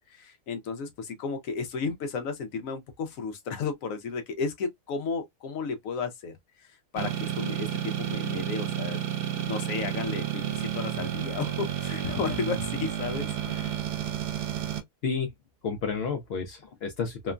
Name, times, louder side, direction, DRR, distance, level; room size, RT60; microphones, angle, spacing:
voice 1, 0.1-9.0 9.2-13.7, left 5 dB, 65° left, 0.9 m, -33 dB
sound 1, 7.0-14.8, right 10 dB, 80° right, 1.1 m, -31 dB
voice 2, 15.6-17.3, left 5 dB, 85° left, 0.5 m, -31 dB
2.9 x 2.1 x 2.4 m
omnidirectional pair, 1.7 m